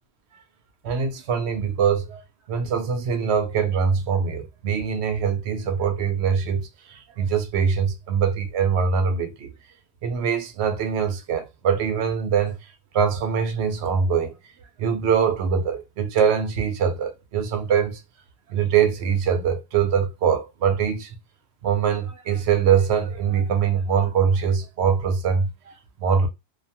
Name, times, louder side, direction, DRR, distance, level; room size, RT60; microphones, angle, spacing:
voice 1, 0.8-2.2 2.5-9.5 10.0-12.6 12.9-14.3 14.8-18.0 18.5-21.1 21.6-25.7 26.0-26.3, right 7 dB, 75° right, 0.8 m, -23 dB
2.5 x 2.2 x 2.7 m
omnidirectional pair, 1.2 m